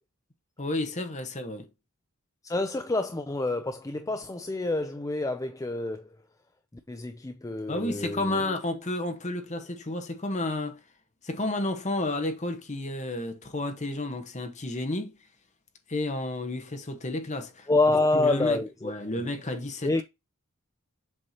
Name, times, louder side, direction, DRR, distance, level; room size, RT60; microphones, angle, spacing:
voice 1, 0.6-1.7 7.7-10.8 11.2-15.2 15.9-17.7 18.1-20.0, left 2 dB, 35° left, 1.2 m, -31 dB
voice 2, 2.4-6.1 6.9-8.5 17.7-19.2 19.8-20.0, left 2 dB, 15° left, 0.4 m, -27 dB
7.6 x 4.4 x 2.9 m
head